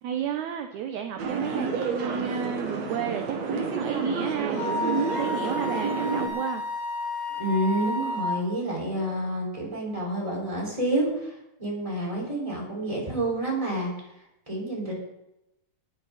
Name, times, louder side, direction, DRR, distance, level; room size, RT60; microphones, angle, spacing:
voice 1, 0.0-6.6, right 8 dB, 70° right, 6 dB, 1.9 m, -32 dB
sound 1, 1.2-6.3, right 4 dB, 55° right, 2.8 m, -29 dB
Wind instrument woodwind instrument, 4.6-8.4, left 2 dB, 80° left, 4.2 m, -31 dB
voice 2, 7.4-13.9 14.5-14.9, right 1 dB, 10° right, -2 dB, 4.9 m, -28 dB
19.0 x 10.5 x 4.2 m, 0.87 s
omnidirectional pair, 4.1 m